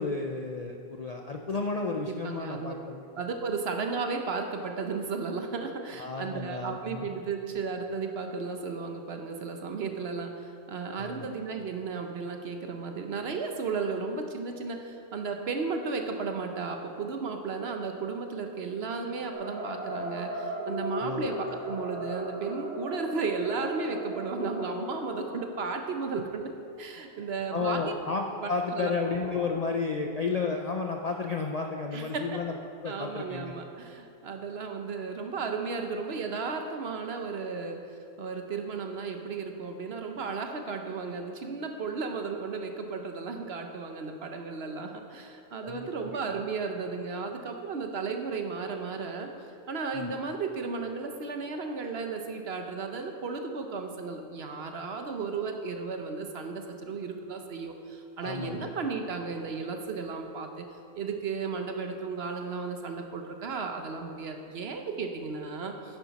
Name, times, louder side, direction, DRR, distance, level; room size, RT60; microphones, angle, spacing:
voice 1, 0.0-3.0 6.0-7.1 11.0-11.3 21.0-21.3 27.5-32.5 32.8-33.5 45.6-46.1 49.9-50.1 58.2-58.7, left 4 dB, 50° left, 2 dB, 0.5 m, -32 dB
voice 2, 2.1-2.7 3.1-26.5 26.8-27.9 28.4-28.9 31.9-32.4 32.9-49.3 49.7-60.7 61.0-66.0, right 4 dB, 60° right, 5 dB, 1.0 m, -34 dB
sound 1, 19.3-26.3 26.9-27.0 27.1-27.2 28.0-29.5, equal, 80° right, 2.2 m, -38 dB
10.5 x 9.2 x 4.1 m, 2.5 s
omnidirectional pair, 1.3 m